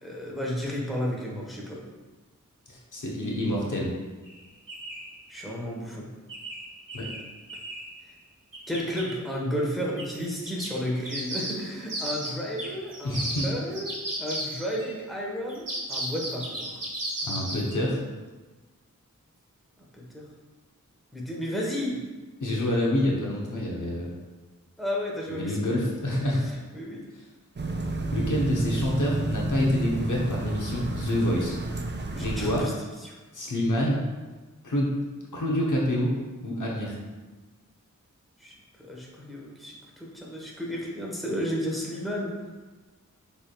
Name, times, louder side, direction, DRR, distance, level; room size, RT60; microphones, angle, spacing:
voice 1, 0.0-1.8 5.3-6.1 8.7-13.2 13.4-13.9 14.2-16.7 19.8-20.2 21.1-22.0 24.8-25.6 26.7-27.1 28.4-29.2 32.1-32.7 33.0-33.1 38.4-42.3, equal, ahead, -3 dB, 1.1 m, -32 dB
voice 2, 2.7-3.9 6.9-7.1 13.0-13.5 17.2-18.0 22.4-24.2 25.3-26.4 28.1-31.6 32.1-32.7 33.3-34.0 34.6-34.9 35.3-36.1 36.4-37.0, left 1 dB, 70° left, -3 dB, 1.0 m, -27 dB
Bird Whistle, 4.2-4.3 4.7-5.1 6.3-7.9 8.5-9.1 10.0-10.1 10.5-14.9 15.5-17.8, right 1 dB, 85° right, 1.0 m, -35 dB
sound 1, 27.6-32.6, right 2 dB, 35° right, 0.5 m, -30 dB
6.3 x 3.5 x 2.3 m, 1.2 s
wide cardioid pair, 55°, 32 cm